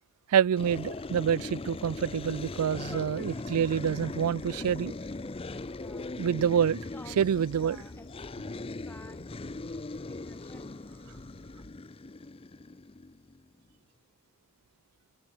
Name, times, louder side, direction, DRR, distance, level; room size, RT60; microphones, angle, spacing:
voice 1, 0.3-4.9 6.2-6.8 7.2-7.8, right 8 dB, 85° right, 0.4 m, -27 dB
sound 1, 0.6-13.5, left 2 dB, 25° left, 0.5 m, -40 dB
Train, 1.8-11.8, left 1 dB, 60° left, 4.4 m, -55 dB
voice 2, 2.3-6.2 6.9-9.4 10.1-10.8, left 1 dB, 10° left, 3.8 m, -53 dB
head